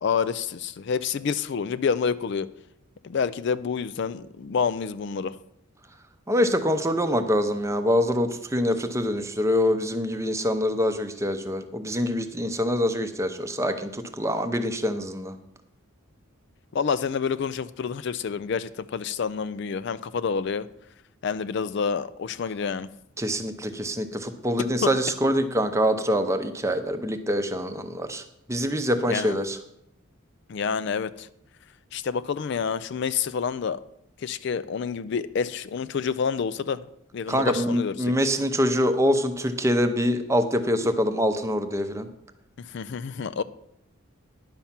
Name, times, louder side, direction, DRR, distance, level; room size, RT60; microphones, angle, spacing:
voice 1, 0.0-2.5 3.0-5.4 16.7-20.7 21.2-22.9 24.8-24.9 29.1-29.4 30.5-31.3 31.9-33.8 34.2-36.8 37.1-38.1 42.6-43.4, left 6 dB, 55° left, 14 dB, 0.3 m, -28 dB
voice 2, 6.3-15.3 23.2-28.2 28.5-29.6 37.3-42.1, equal, 15° right, 8 dB, 0.7 m, -25 dB
10.5 x 5.6 x 7.3 m, 0.78 s
head